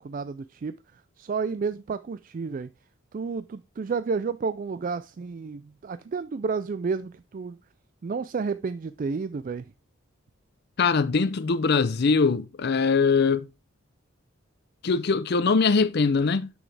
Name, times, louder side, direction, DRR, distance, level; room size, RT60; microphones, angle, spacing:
voice 1, 0.0-2.7 3.1-7.6 8.0-9.7, right 5 dB, 40° right, 0.3 m, -31 dB
voice 2, 10.8-13.5 14.8-16.5, left 4 dB, 55° left, 0.5 m, -22 dB
9.0 x 6.2 x 3.3 m
head